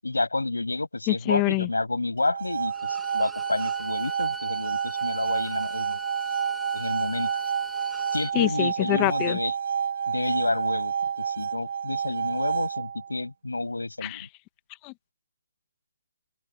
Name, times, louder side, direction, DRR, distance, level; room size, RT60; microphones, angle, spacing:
voice 1, 0.0-6.0 6.7-7.3 8.1-9.5 10.1-14.3, left 2 dB, 85° left, 7.5 m, -30 dB
voice 2, 1.1-1.7 8.3-9.4 14.0-14.3 14.8-15.1, left 26 dB, 20° left, 1.4 m, -26 dB
sound 1, 2.2-13.2, right 7 dB, 55° right, 1.5 m, -29 dB
Bowed string instrument, 2.7-8.4, right 1 dB, ahead, 1.9 m, -41 dB
open air
figure-of-eight pair, 145°, 0 cm